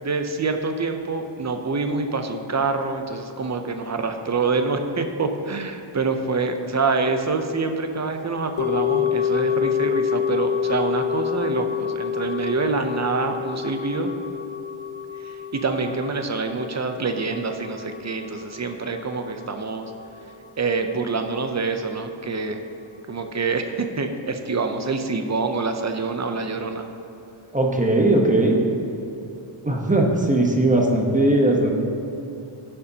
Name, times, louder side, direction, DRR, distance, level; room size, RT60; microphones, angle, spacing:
voice 1, 0.0-14.1 15.2-19.9 20.6-22.6 23.1-26.8, right 4 dB, 35° right, 6 dB, 0.6 m, -26 dB
sound 1, 8.6-18.9 19.1-19.2, left 8 dB, 75° left, 1.0 m, -27 dB
voice 2, 27.5-28.6 29.6-31.8, right 1 dB, 15° right, 0 dB, 1.0 m, -19 dB
16.5 x 6.8 x 2.8 m, 2.7 s
wide cardioid pair, 155°, 49 cm